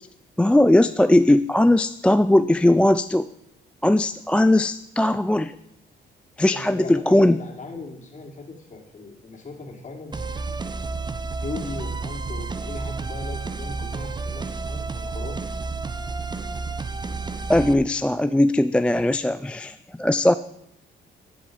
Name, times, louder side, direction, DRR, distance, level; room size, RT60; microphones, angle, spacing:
voice 1, 0.4-3.3 3.8-5.5 6.4-7.4 17.5-20.3, left 1 dB, 5° left, 12 dB, 0.3 m, -19 dB
voice 2, 6.5-10.2 11.4-15.4, left 3 dB, 40° left, 0 dB, 2.9 m, -38 dB
sound 1, 10.1-17.7, right 4 dB, 20° right, 0.7 m, -31 dB
15.0 x 7.8 x 5.1 m, 0.79 s
cardioid pair, 90°, 20 cm